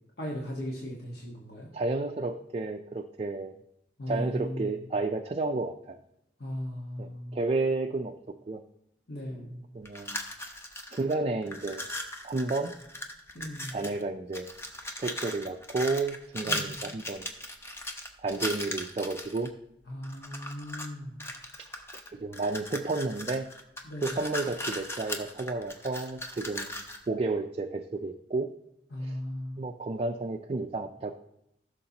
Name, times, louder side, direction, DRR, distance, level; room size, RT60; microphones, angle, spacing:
voice 1, 0.2-1.7 4.0-4.7 6.4-7.4 9.1-9.6 13.3-13.7 16.4-16.8 19.9-21.2 23.8-24.1 28.9-29.6, left 1 dB, 60° left, -3 dB, 1.4 m, -37 dB
voice 2, 1.7-3.5 4.1-6.0 7.0-8.1 8.5-8.6 9.7-10.2 10.9-11.8 12.2-12.7 13.7-14.5 15.0-17.3 18.2-19.5 21.6-21.7 22.1-23.5 24.0-28.5 29.0-29.2 29.6-31.1, right 3 dB, 35° right, 4 dB, 0.4 m, -31 dB
sound 1, 9.9-11.1 11.4-14.0 14.3-19.5 20.0-20.9 21.2-27.1, left 1 dB, 15° left, 0.8 m, -38 dB
15.5 x 6.6 x 2.9 m, 0.80 s
head